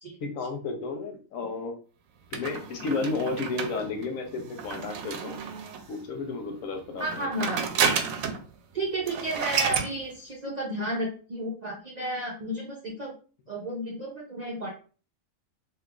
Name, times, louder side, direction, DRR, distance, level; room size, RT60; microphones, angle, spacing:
voice 1, 0.2-1.8 2.3-5.4 5.9-7.3, left 3 dB, 80° left, 5 dB, 1.1 m, -32 dB
sound 1, 2.3-6.0 6.9-8.5 8.8-8.9 9.1-9.9, right 6 dB, 90° right, 1.0 m, -30 dB
voice 2, 7.0-7.6 8.7-13.1 13.5-14.7, right 1 dB, 50° right, -3 dB, 0.5 m, -32 dB
3.4 x 2.8 x 2.3 m, 0.39 s
omnidirectional pair, 1.4 m